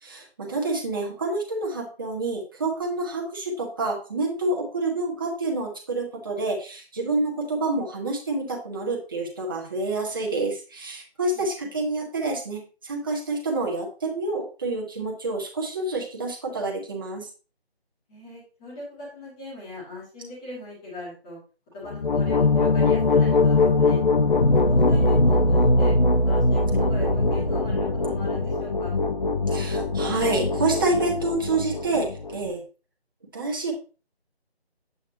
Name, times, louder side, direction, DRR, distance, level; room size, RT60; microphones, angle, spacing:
voice 1, 0.0-17.3 29.5-32.6 33.3-33.7, right 2 dB, 20° right, 0 dB, 1.5 m, -28 dB
voice 2, 11.3-11.8 18.1-21.4 21.7-24.0 24.7-25.9 26.2-28.9, left 1 dB, 5° left, -6 dB, 1.4 m, -40 dB
sound 1, 21.9-32.5, left 2 dB, 50° left, 0.9 m, -21 dB
8.8 x 8.3 x 2.9 m, 0.35 s
figure-of-eight pair, 160°, 32 cm